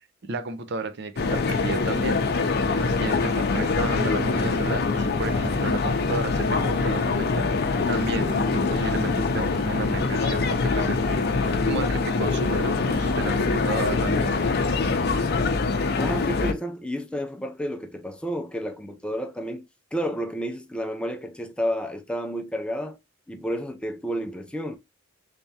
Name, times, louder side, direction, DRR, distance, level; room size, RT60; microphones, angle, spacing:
voice 1, 0.3-2.2 2.7-14.4, right 3 dB, 60° right, 0.6 m, -33 dB
sound 1, 1.2-16.5, left 4 dB, 55° left, 0.6 m, -24 dB
voice 2, 16.0-19.7 19.9-23.0 23.3-24.8, equal, 5° left, 0.4 m, -31 dB
3.3 x 3.3 x 2.7 m
head